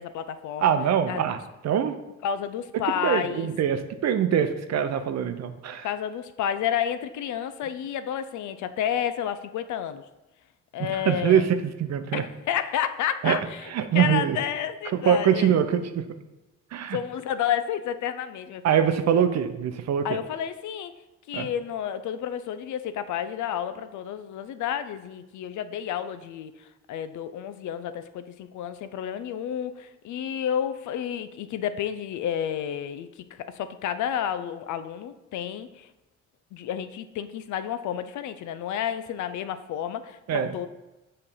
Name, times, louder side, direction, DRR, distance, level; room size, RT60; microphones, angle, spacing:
voice 1, 0.0-0.7 1.1-1.3 2.2-3.5 5.8-10.0 10.7-11.4 12.1-15.6 16.9-18.9 20.0-21.0 21.3-35.9 36.5-40.7, left 9 dB, 75° left, 12 dB, 0.5 m, -31 dB
voice 2, 0.6-1.4 1.6-2.0 3.0-5.9 10.8-12.2 13.2-13.4 13.7-14.4 14.9-16.0 16.7-17.0 18.6-20.1 21.3-21.5 40.3-40.5, right 8 dB, 60° right, 9 dB, 0.6 m, -23 dB
6.8 x 3.3 x 5.6 m, 1.0 s
cardioid pair, 90°, 30 cm